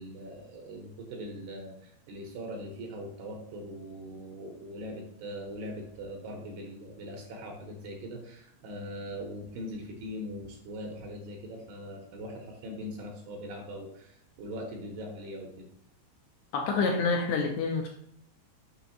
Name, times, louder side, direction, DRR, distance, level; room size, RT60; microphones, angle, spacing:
voice 1, 0.0-15.7, equal, 75° right, 1 dB, 2.6 m, -41 dB
voice 2, 16.5-17.9, left 4 dB, 80° left, 1 dB, 2.5 m, -27 dB
6.9 x 5.5 x 2.8 m, 0.72 s
omnidirectional pair, 5.3 m